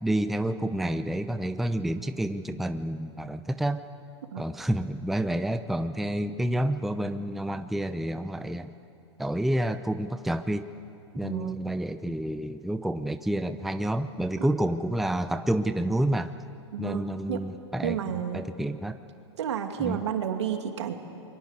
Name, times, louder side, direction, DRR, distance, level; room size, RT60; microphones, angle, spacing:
voice 1, 0.0-3.8 4.4-8.7 9.2-10.7 11.1-16.3 16.8-18.0 18.3-19.0 19.8-20.0, right 1 dB, ahead, 10 dB, 0.7 m, -29 dB
voice 2, 11.2-11.6 14.4-14.5 16.7-17.4 17.8-18.5 19.4-20.9, right 9 dB, 70° right, 5 dB, 2.6 m, -31 dB
28.0 x 23.5 x 8.3 m, 2.7 s
hypercardioid pair, 115°, 15 cm